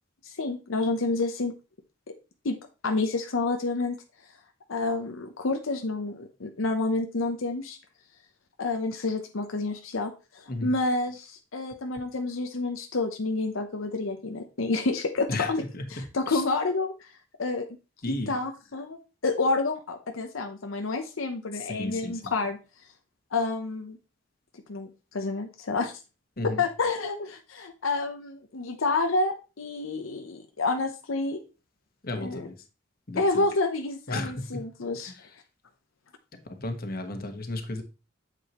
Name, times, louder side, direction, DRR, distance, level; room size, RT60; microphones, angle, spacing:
voice 1, 0.2-1.5 2.4-2.5 2.8-4.0 4.7-7.8 8.6-15.6 15.9-16.9 17.4-17.7 18.1-19.0 19.2-22.6 23.3-24.0 24.7-25.9 26.4-31.4 32.1-32.5 33.2-35.1, left 3 dB, 85° left, 6 dB, 0.8 m, -29 dB
voice 2, 15.3-16.4 18.0-18.3 21.6-22.1 26.4-26.6 32.0-32.5 33.1-33.4 34.1-34.6 35.0-35.1 36.4-37.8, left 2 dB, 50° left, 6 dB, 1.3 m, -34 dB
8.1 x 7.6 x 3.0 m, 0.30 s
head